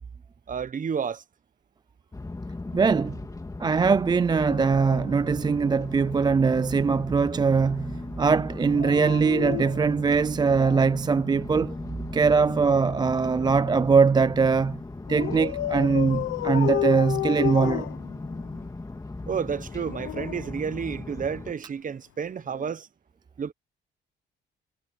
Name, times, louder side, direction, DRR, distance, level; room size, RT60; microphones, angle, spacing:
voice 1, 0.5-1.2 19.3-22.9 23.4-23.5, right 7 dB, 40° right, 1.1 m, -31 dB
sound 1, 2.1-21.5, left 2 dB, 15° left, 2.5 m, -38 dB
voice 2, 2.7-3.2 3.6-11.8 12.1-14.8 15.1-17.9, right 5 dB, 20° right, 0.3 m, -22 dB
Dog, 4.3-6.2 8.6-11.0 12.3-13.9 15.1-18.6 19.6-21.3 22.5-22.7, left 14 dB, 80° left, 0.8 m, -33 dB
cardioid pair, 90°, 20 cm